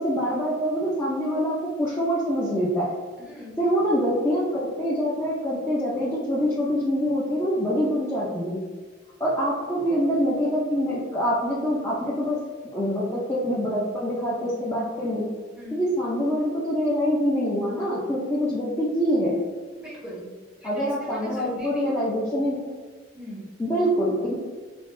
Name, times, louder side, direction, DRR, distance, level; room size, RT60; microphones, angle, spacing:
voice 1, 0.0-2.9 3.6-8.6 9.2-12.4 12.6-15.3 15.7-19.3 20.6-22.6 23.6-24.3, equal, 15° left, -8 dB, 0.4 m, -25 dB
voice 2, 3.2-3.6 15.6-15.8 19.8-20.3 20.6-21.9 23.1-23.4, equal, 5° right, -6 dB, 0.8 m, -39 dB
3.4 x 2.1 x 2.5 m, 1.4 s
head